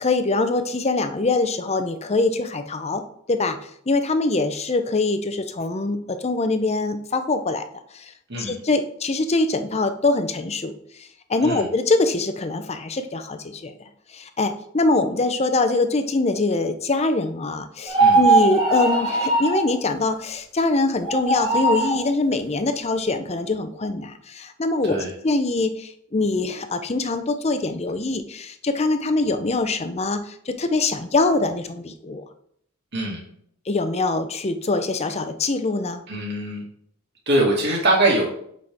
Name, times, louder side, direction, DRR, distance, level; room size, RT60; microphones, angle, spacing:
voice 1, 0.0-3.0 3.3-7.6 7.9-10.8 11.3-13.7 14.1-25.0 25.2-32.2 33.7-36.0, left 3 dB, 30° left, 9 dB, 0.6 m, -23 dB
sound 1, 17.9-19.7 21.0-22.0, right 3 dB, 25° right, 1.9 m, -19 dB
voice 2, 36.1-36.6 37.3-38.2, right 1 dB, 55° right, -2 dB, 2.3 m, -22 dB
7.8 x 5.5 x 3.5 m, 0.68 s
head